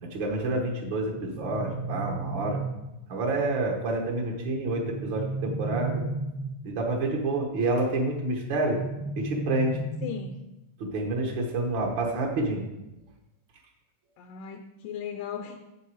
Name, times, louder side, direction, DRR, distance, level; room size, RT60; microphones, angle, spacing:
voice 1, 0.0-2.6 3.1-6.0 6.6-8.8 9.2-9.8 10.8-12.7, right 2 dB, 75° right, 0 dB, 1.0 m, -28 dB
sound 1, 1.1-3.1 4.8-6.8 8.5-10.5, right 2 dB, 20° right, 0.4 m, -34 dB
voice 2, 10.0-10.4 14.2-15.6, left 8 dB, 80° left, 6 dB, 2.1 m, -37 dB
9.2 x 7.5 x 4.7 m, 0.96 s
omnidirectional pair, 4.0 m